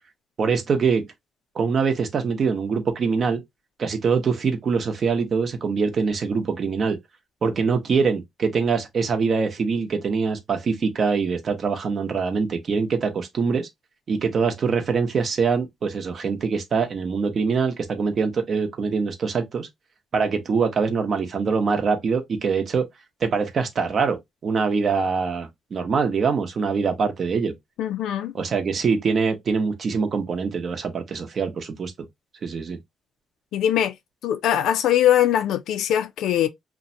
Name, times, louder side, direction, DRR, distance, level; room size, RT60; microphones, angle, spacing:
voice 1, 0.4-1.0 1.5-3.4 3.8-7.0 7.4-13.7 14.1-19.7 20.1-22.8 23.2-27.5 28.3-31.9 32.4-32.8, right 5 dB, 50° right, 0.7 m, -24 dB
voice 2, 27.8-28.3 33.5-33.9 34.2-36.5, left 11 dB, 80° left, 0.4 m, -21 dB
2.6 x 2.1 x 2.6 m
cardioid pair, 90°, 0 cm